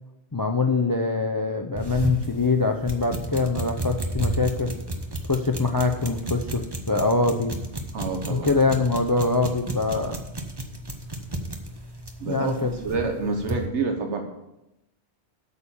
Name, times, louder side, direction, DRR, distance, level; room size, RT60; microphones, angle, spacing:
voice 1, 0.3-4.7 5.3-7.6 8.3-10.2 12.3-12.7, left 3 dB, 25° left, 6 dB, 0.5 m, -24 dB
sound 1, 1.8-13.7, right 1 dB, 25° right, 1.0 m, -33 dB
voice 2, 7.9-8.5 12.2-14.2, right 4 dB, 85° right, 3 dB, 1.5 m, -28 dB
8.4 x 6.8 x 7.1 m, 0.89 s
omnidirectional pair, 1.2 m